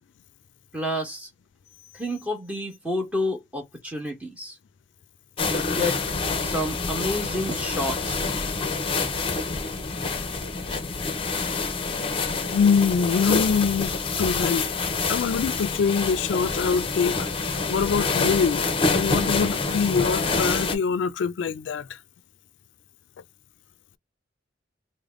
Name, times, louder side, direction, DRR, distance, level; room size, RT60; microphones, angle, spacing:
voice 1, 0.7-1.3 2.0-4.5 5.5-6.0 6.4-8.2, left 1 dB, 10° right, 1.3 m, -29 dB
sound 1, 5.4-20.8, left 4 dB, 30° left, 0.7 m, -27 dB
voice 2, 12.4-17.2 17.7-22.0, left 6 dB, 80° left, 0.4 m, -24 dB
3.3 x 2.1 x 3.6 m
head